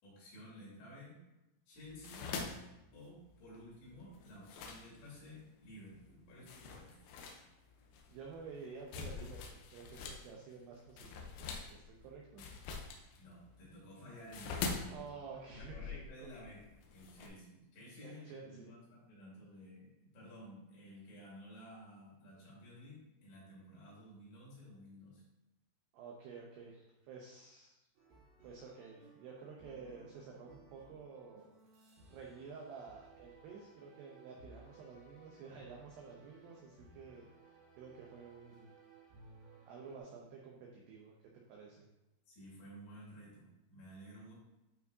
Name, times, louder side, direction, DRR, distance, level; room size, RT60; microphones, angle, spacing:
voice 1, 0.0-1.2 1.7-2.4 2.9-7.0 13.2-14.8 15.6-16.6 16.9-25.2 42.3-44.3, equal, 60° left, -7 dB, 4.8 m, -53 dB
sound 1, 1.8-5.4 5.9-6.1 6.5-10.3 10.5-17.3, left 5 dB, 85° left, 3.2 m, -44 dB
voice 2, 8.1-12.5 14.9-16.1 18.0-18.7 22.3-22.4 25.9-27.8 28.4-31.5 32.1-37.3 37.8-38.7 39.7-41.8, right 5 dB, 85° right, -1 dB, 2.4 m, -51 dB
sound 2, 27.9-40.0, right 2 dB, 65° right, 4.5 m, -61 dB
12.0 x 4.7 x 2.8 m, 0.95 s
omnidirectional pair, 5.9 m